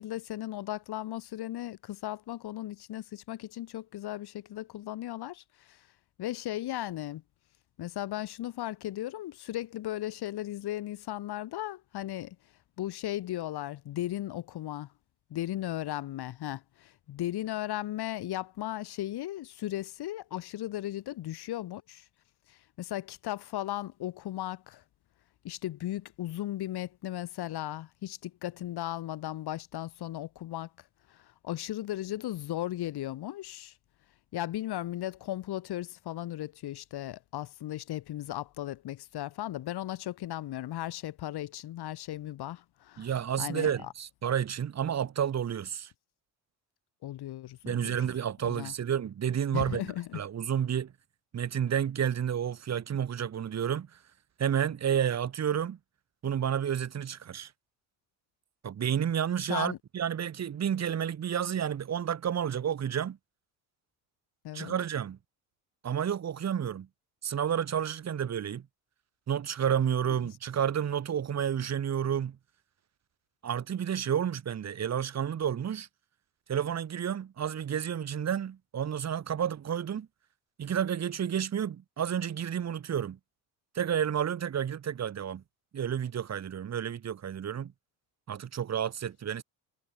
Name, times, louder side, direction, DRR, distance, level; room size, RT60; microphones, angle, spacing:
voice 1, 0.0-5.8 6.2-7.2 7.8-12.4 12.8-14.9 15.3-22.0 22.5-24.8 25.4-30.7 31.1-33.7 34.3-43.1 43.4-43.9 47.0-48.0 48.4-48.7 49.5-50.2 59.5-59.8 64.4-64.7 70.1-70.3, left 14 dB, 60° left, 2.3 m, -36 dB
voice 2, 43.0-45.9 47.6-50.9 51.3-53.9 54.4-55.8 56.2-57.5 58.6-63.2 64.5-65.2 65.8-66.9 67.2-68.6 69.3-72.4 73.4-75.9 76.5-80.1 80.6-83.2 83.7-85.4 85.7-87.7 88.3-89.4, right 9 dB, 35° right, 1.7 m, -30 dB
cardioid pair, 100°, 44 cm